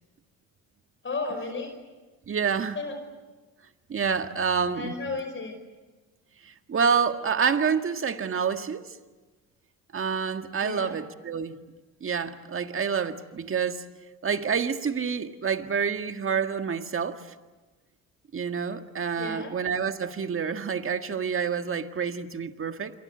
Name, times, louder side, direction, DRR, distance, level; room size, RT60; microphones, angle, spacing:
voice 1, 1.0-1.8 2.7-3.0 4.7-5.6 10.6-11.0 19.2-19.5, left 3 dB, 35° left, 5.1 m, -33 dB
voice 2, 2.3-2.8 3.9-4.9 6.4-8.8 9.9-11.6 12.0-13.8 14.2-17.2 18.3-22.9, right 6 dB, 35° right, 1.8 m, -28 dB
27.5 x 23.5 x 8.1 m
supercardioid pair, 80°, 35 cm